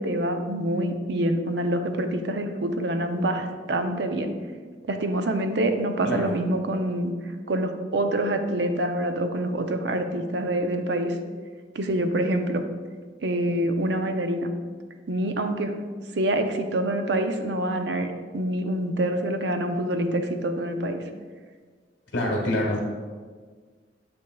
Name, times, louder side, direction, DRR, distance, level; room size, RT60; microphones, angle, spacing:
voice 1, 0.0-4.3 4.9-7.1 7.5-11.2 11.7-12.6 13.2-14.5 15.1-15.8 16.2-21.0, right 1 dB, 65° right, 6 dB, 0.6 m, -26 dB
voice 2, 6.0-6.3 22.1-22.8, left 1 dB, 75° left, -2 dB, 1.4 m, -26 dB
8.4 x 6.3 x 2.3 m, 1.5 s
head